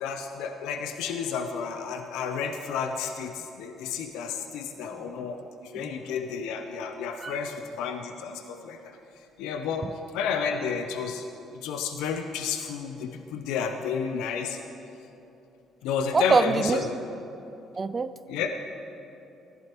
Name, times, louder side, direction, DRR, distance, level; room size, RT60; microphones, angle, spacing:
voice 1, 0.0-5.4 5.7-8.8 9.4-9.9 10.1-11.2 11.6-14.6 15.8-16.9 18.3-18.5, left 6 dB, 85° left, 5 dB, 0.5 m, -31 dB
voice 2, 16.1-16.8 17.8-18.1, right 4 dB, 35° right, 13 dB, 0.4 m, -24 dB
14.5 x 11.0 x 3.0 m, 3.0 s
supercardioid pair, 80°, 0 cm